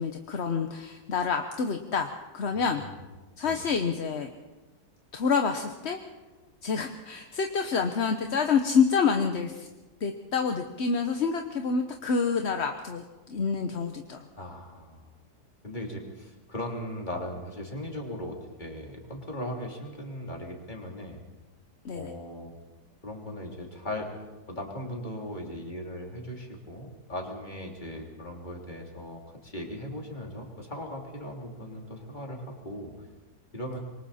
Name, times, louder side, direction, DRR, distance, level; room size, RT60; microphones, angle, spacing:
voice 1, 0.0-2.8 3.4-4.3 5.1-6.0 6.6-9.7 10.0-14.2 21.8-22.1, left 5 dB, 45° left, 5 dB, 1.1 m, -27 dB
voice 2, 2.5-3.0 3.4-3.6 14.4-15.0 15.6-21.2 21.9-22.5 23.0-24.1 24.5-32.9 33.5-33.8, left 1 dB, 25° left, 0 dB, 3.4 m, -38 dB
26.0 x 23.5 x 4.3 m, 1.2 s
omnidirectional pair, 1.8 m